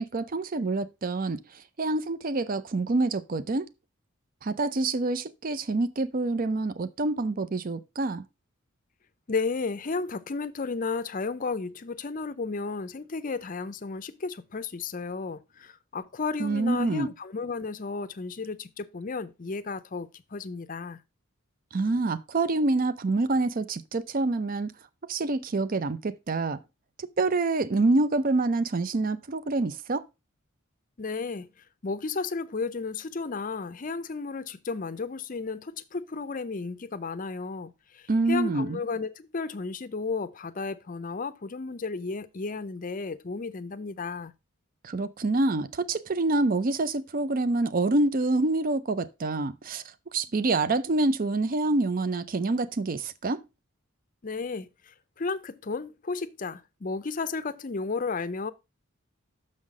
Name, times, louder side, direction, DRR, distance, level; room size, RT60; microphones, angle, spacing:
voice 1, 0.0-1.4 1.8-3.7 4.4-8.2 16.4-17.1 21.7-24.7 25.1-26.6 27.0-30.0 38.1-38.8 44.8-49.8 50.1-53.4, right 2 dB, 40° right, 0.5 m, -26 dB
voice 2, 9.3-21.0 31.0-31.5 31.8-44.3 54.2-58.5, left 4 dB, 40° left, 0.5 m, -33 dB
6.4 x 5.7 x 4.8 m
head